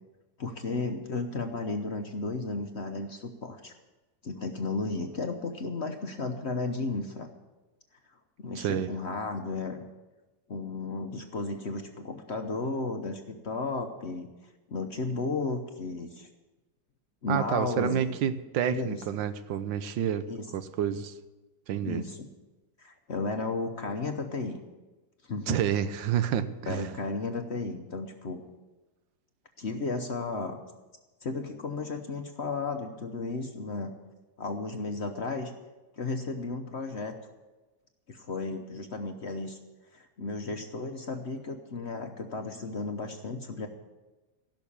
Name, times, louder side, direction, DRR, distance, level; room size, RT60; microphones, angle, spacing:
voice 1, 0.4-3.7 4.2-7.3 8.4-9.8 10.5-14.3 14.7-16.3 17.2-18.1 18.7-19.0 20.3-20.5 21.8-22.3 22.8-24.6 25.2-25.6 26.7-28.4 29.6-30.6 31.2-33.9 34.4-35.5 36.0-37.1 38.1-39.6 39.9-43.7, left 3 dB, 45° left, 5 dB, 0.9 m, -34 dB
voice 2, 8.6-8.9 17.3-20.3 20.5-21.1 21.7-22.0 25.5-26.9, right 9 dB, 85° right, 12 dB, 1.5 m, -29 dB
16.0 x 6.3 x 8.6 m, 1.2 s
omnidirectional pair, 2.0 m